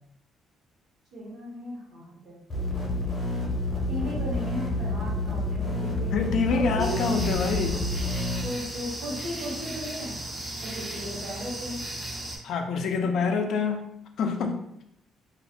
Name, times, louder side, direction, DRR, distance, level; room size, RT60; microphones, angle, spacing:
voice 1, 1.1-2.4 3.3-6.1 6.5-7.0 8.4-10.1 10.6-11.8 13.0-13.3, equal, 70° right, -4 dB, 1.0 m, -36 dB
sound 1, 2.5-8.4, left 2 dB, 30° left, 0.6 m, -29 dB
voice 2, 6.1-7.8 12.4-13.9 14.2-14.8, left 5 dB, 65° left, 5 dB, 0.3 m, -26 dB
sound 2, 6.8-12.4, right 1 dB, 15° right, 0.4 m, -36 dB
2.4 x 2.0 x 2.6 m, 0.76 s
cardioid pair, 145°, 0 cm